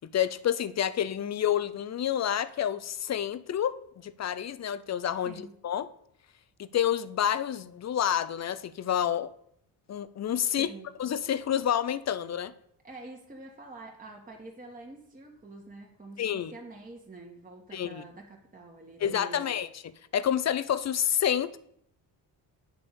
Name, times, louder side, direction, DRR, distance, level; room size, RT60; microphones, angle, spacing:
voice 1, 0.1-3.7 4.0-5.9 6.6-9.3 9.9-10.7 11.0-12.5 16.2-16.5 17.7-18.0 19.0-19.8 20.1-21.6, left 9 dB, 40° left, 15 dB, 0.6 m, -29 dB
voice 2, 12.8-19.6, right 2 dB, 20° right, -1 dB, 1.4 m, -46 dB
8.9 x 3.5 x 6.7 m, 0.71 s
cardioid pair, 75°, 43 cm